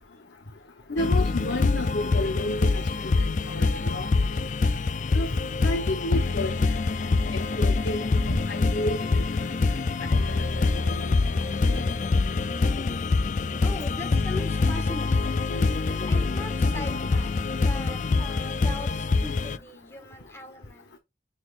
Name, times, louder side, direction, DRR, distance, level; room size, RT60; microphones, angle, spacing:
voice 1, 0.9-4.3 5.1-5.3 5.6-6.8 7.0-9.2 9.7-11.1 11.7-11.8 15.5-15.7, left 1 dB, 85° left, 1.0 m, -32 dB
sound 1, 1.0-19.6, left 3 dB, 40° left, 0.4 m, -25 dB
voice 2, 13.6-15.6 16.1-20.9, left 1 dB, 15° left, 1.7 m, -40 dB
10.0 x 4.2 x 2.5 m
head